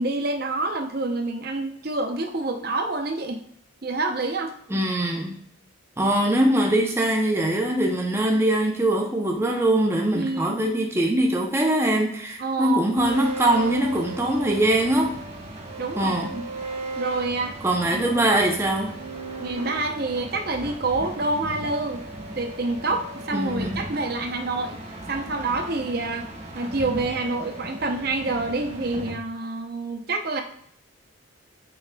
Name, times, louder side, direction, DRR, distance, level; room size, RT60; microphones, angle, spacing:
voice 1, 0.0-3.4 3.8-4.5 10.1-10.5 12.4-12.9 15.8-16.4 17.0-17.6 17.8-18.0 19.4-22.0 22.3-24.8 25.1-26.3 26.5-30.4, right 2 dB, 50° right, 5 dB, 0.7 m, -27 dB
voice 2, 4.7-5.4 6.0-15.2 16.0-16.3 17.6-18.9 23.3-23.8, right 1 dB, 10° right, 1 dB, 0.6 m, -22 dB
sound 1, 13.0-29.1, right 2 dB, 35° right, 1.3 m, -36 dB
8.3 x 5.7 x 2.3 m, 0.68 s
head